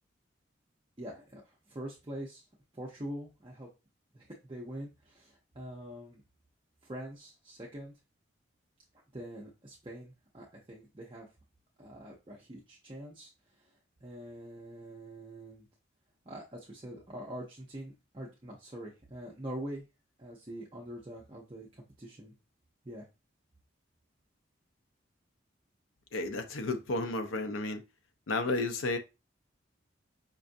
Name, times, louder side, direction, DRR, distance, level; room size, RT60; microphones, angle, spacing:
voice 1, 1.0-2.5 2.7-3.7 4.1-6.2 6.8-7.9 9.1-11.3 11.8-13.3 13.6-13.7 14.0-15.7 16.3-19.8 20.2-22.3 22.8-23.0, right 1 dB, 25° right, 0.6 m, -44 dB
voice 2, 26.1-27.8 28.3-29.0, left 2 dB, 90° left, 0.6 m, -32 dB
5.2 x 2.5 x 2.5 m
head